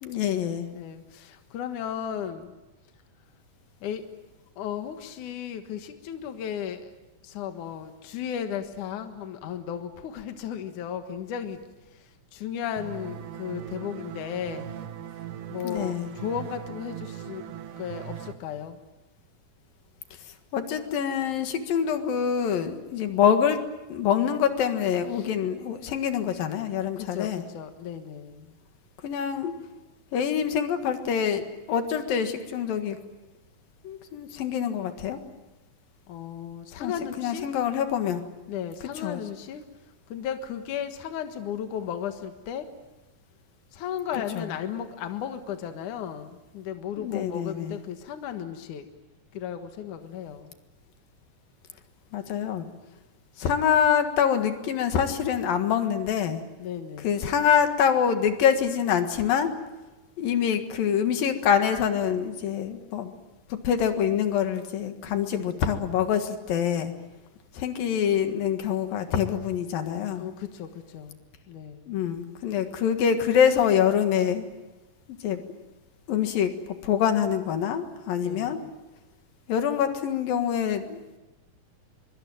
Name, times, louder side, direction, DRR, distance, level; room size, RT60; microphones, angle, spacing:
voice 1, 0.0-0.7 15.6-16.1 20.5-23.6 23.9-27.4 29.0-29.5 30.1-33.0 33.8-35.2 36.8-38.2 39.0-39.2 44.4-44.5 47.0-47.8 52.1-52.7 53.4-56.4 57.0-59.5 60.2-63.1 63.5-66.9 67.5-70.3 71.9-74.5 75.2-75.4 76.1-76.5 76.8-78.6 79.5-81.2, left 8 dB, 85° left, 7 dB, 3.5 m, -25 dB
voice 2, 0.7-2.5 3.8-4.0 4.6-6.9 7.2-11.6 11.9-14.7 15.5-17.4 17.8-18.8 25.1-25.3 27.0-28.5 36.1-37.5 38.5-39.6 40.1-42.7 43.7-48.9 49.3-50.5 56.6-57.2 70.0-71.2 71.5-71.9 78.2-78.7, left 8 dB, 65° left, 7 dB, 2.9 m, -35 dB
sound 1, 12.8-18.3, right 10 dB, 70° right, 2.8 m, -39 dB
24.0 x 24.0 x 9.1 m, 1.1 s
omnidirectional pair, 4.0 m